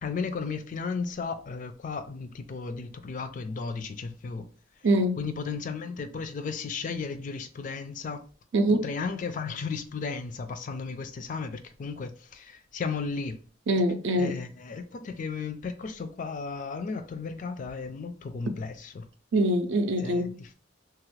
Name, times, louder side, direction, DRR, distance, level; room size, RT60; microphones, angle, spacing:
voice 1, 0.0-4.5 5.2-8.2 8.7-13.4 14.2-19.1 20.0-20.5, left 5 dB, 45° left, 0.3 m, -34 dB
voice 2, 4.8-5.2 8.5-8.9 13.7-14.4 19.3-20.3, right 1 dB, 70° right, 0.5 m, -24 dB
2.9 x 2.4 x 3.1 m
head